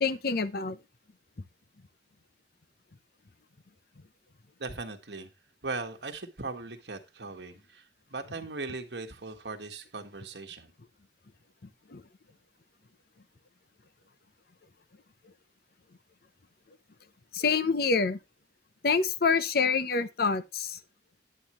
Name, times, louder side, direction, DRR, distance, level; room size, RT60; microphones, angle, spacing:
voice 1, 0.0-0.8 11.9-12.0 17.3-18.2 18.8-20.8, left 5 dB, 60° left, 0.8 m, -26 dB
voice 2, 4.6-5.3 5.6-7.8 8.1-10.7, right 3 dB, 70° right, 1.5 m, -39 dB
9.5 x 8.9 x 3.1 m
head